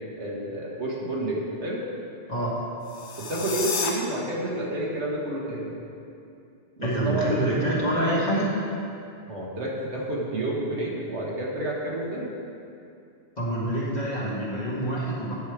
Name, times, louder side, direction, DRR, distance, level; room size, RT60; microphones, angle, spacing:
voice 1, 0.2-1.8 3.2-5.7 6.8-7.6 9.3-12.3, right 1 dB, 75° right, -4 dB, 1.8 m, -29 dB
sound 1, 2.8-3.9, left 5 dB, 75° left, 1.2 m, -31 dB
voice 2, 6.8-8.6 13.4-15.3, right 1 dB, 35° left, -7 dB, 2.0 m, -26 dB
10.0 x 6.4 x 4.9 m, 2.6 s
omnidirectional pair, 1.2 m